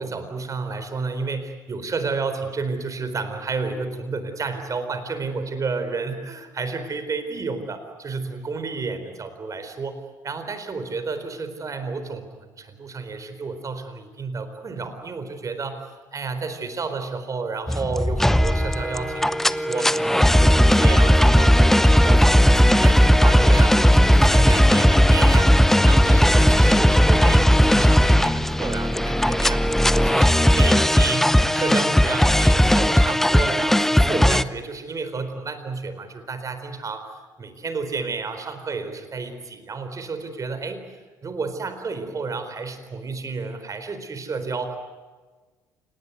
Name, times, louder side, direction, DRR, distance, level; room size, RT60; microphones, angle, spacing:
voice 1, 0.0-29.6 29.9-40.8 41.2-44.8, right 4 dB, 35° right, 9 dB, 4.2 m, -31 dB
sound 1, 17.7-34.4, equal, 5° left, 0.8 m, -17 dB
28.5 x 19.5 x 9.3 m, 1.4 s
figure-of-eight pair, 55°, 10 cm